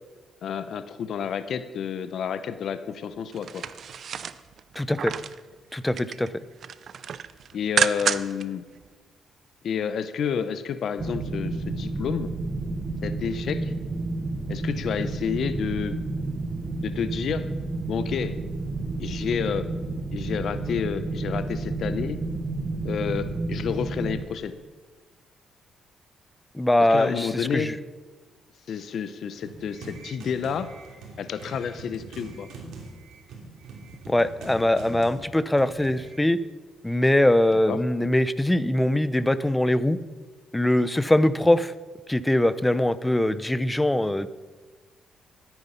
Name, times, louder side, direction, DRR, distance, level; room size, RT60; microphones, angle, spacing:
voice 1, 0.4-3.7 7.5-8.6 9.6-12.3 13.0-13.7 14.5-16.0 16.8-17.5 17.9-18.4 19.0-19.7 20.1-22.2 22.8-24.5 26.8-27.7 28.7-30.7 31.2-32.5 37.7-37.8, left 7 dB, 65° left, 13 dB, 0.7 m, -30 dB
sound 1, 3.3-5.4 5.8-6.3 6.6-8.4 8.8-8.9, right 7 dB, 55° right, 0.5 m, -29 dB
voice 2, 4.8-5.1 5.7-6.3 26.5-27.7 34.1-36.4 36.8-40.0 40.5-41.7 42.1-44.3, left 1 dB, 10° left, 15 dB, 0.6 m, -22 dB
sound 2, 11.0-24.2, right 2 dB, 30° right, 1.5 m, -31 dB
sound 3, 29.4-36.2, right 3 dB, 80° right, 2.7 m, -43 dB
13.5 x 9.3 x 5.6 m, 1.3 s
cardioid pair, 90°, 0 cm